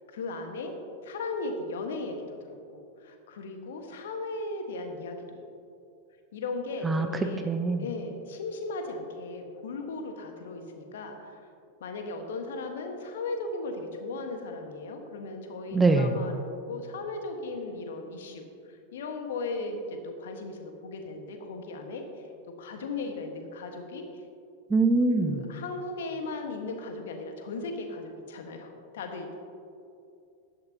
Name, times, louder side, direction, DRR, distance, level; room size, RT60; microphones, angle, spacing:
voice 1, 0.1-0.7 1.0-5.4 6.3-7.5 7.8-11.4 11.8-22.0 22.6-24.0 25.1-29.3, left 3 dB, 60° left, 5 dB, 1.5 m, -37 dB
voice 2, 7.4-7.8 15.7-16.2 24.7-25.4, right 3 dB, 10° right, 6 dB, 0.7 m, -23 dB
15.5 x 11.5 x 2.9 m, 2.6 s
figure-of-eight pair, 90°, 0 cm